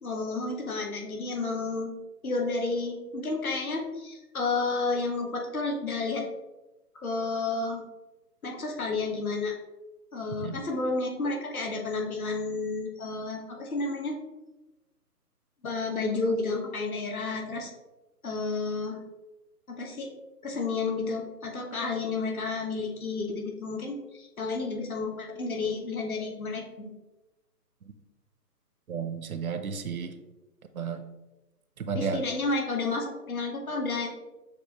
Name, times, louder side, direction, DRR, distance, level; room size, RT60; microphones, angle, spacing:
voice 1, 0.0-1.9 2.2-6.2 7.0-7.8 8.4-9.5 10.1-14.2 15.6-17.7 18.2-19.0 19.7-20.1 20.4-26.9 31.9-34.1, left 3 dB, 60° left, 1 dB, 1.2 m, -31 dB
voice 2, 28.9-30.1 30.7-31.0 31.8-32.2, right 6 dB, 65° right, 9 dB, 0.6 m, -32 dB
6.6 x 2.5 x 2.8 m, 1.1 s
figure-of-eight pair, 155°, 48 cm